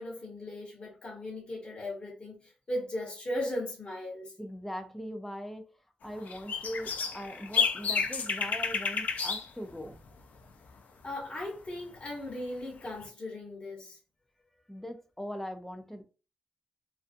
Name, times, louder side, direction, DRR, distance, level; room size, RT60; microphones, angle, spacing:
voice 1, 0.0-4.3 11.0-14.0, left 1 dB, 40° left, 1.2 m, -37 dB
voice 2, 4.4-5.7 6.0-10.0 14.7-16.0, equal, 5° left, 0.5 m, -40 dB
sound 1, 6.1-9.5 9.8-9.9 12.9-13.0, left 5 dB, 70° left, 0.4 m, -31 dB
2.5 x 2.3 x 2.5 m
wide cardioid pair, 120°, 3 cm